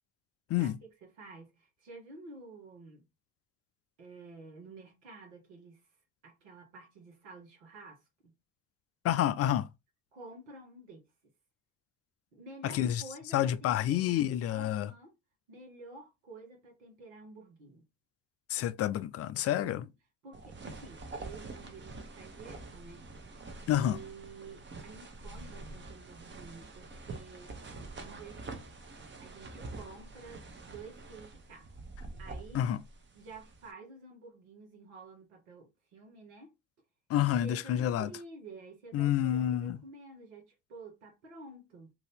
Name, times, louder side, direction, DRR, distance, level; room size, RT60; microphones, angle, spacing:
voice 1, 0.6-3.1 4.0-5.8 6.2-8.3 10.1-11.1 12.3-14.2 14.5-15.1 15.5-17.9 19.4-19.9 20.2-23.1 23.7-27.6 28.0-28.6 29.2-31.7 32.2-32.7 33.1-36.5 37.3-41.9, right 3 dB, 85° right, 1.4 m, -50 dB
voice 2, 9.0-9.7 12.6-13.0 13.3-14.9 18.5-19.8 23.7-24.0 32.5-32.8 37.1-38.1 38.9-39.8, left 11 dB, 45° left, 0.4 m, -29 dB
sound 1, 20.3-33.7, right 3 dB, 35° right, 1.0 m, -46 dB
2.9 x 2.7 x 3.4 m
hypercardioid pair, 60°, 34 cm